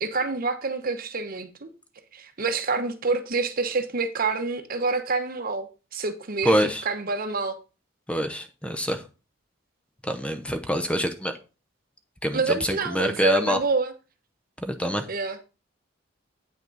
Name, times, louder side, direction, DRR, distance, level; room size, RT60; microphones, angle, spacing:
voice 1, 0.0-1.7 2.1-6.6 6.8-7.6 12.3-13.9 15.1-15.4, right 4 dB, 45° right, 0.9 m, -27 dB
voice 2, 6.4-6.8 8.1-9.0 10.0-11.4 12.2-13.6 14.6-15.0, equal, 5° left, 0.7 m, -25 dB
8.9 x 5.9 x 3.9 m
head